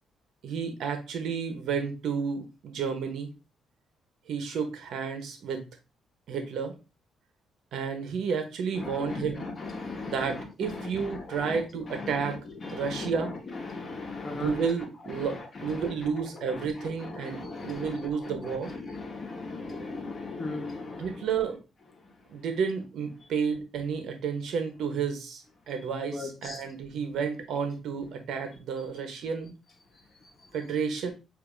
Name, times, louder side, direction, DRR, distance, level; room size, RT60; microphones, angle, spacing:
voice 1, 0.4-3.3 4.3-5.6 6.3-6.7 7.7-9.5 10.1-12.5 12.7-13.3 14.3-18.7 21.0-21.6 22.3-29.5 30.5-31.1, right 6 dB, 75° right, 1.0 m, -31 dB
voice 2, 8.8-10.1 11.5-11.6 11.9-12.1 12.6-13.1 13.6-14.5 15.2-15.3 17.2-18.0 18.8-21.1 26.1-26.6, left 3 dB, 40° left, 1.2 m, -37 dB
6.8 x 2.8 x 2.6 m
cardioid pair, 90°, 0 cm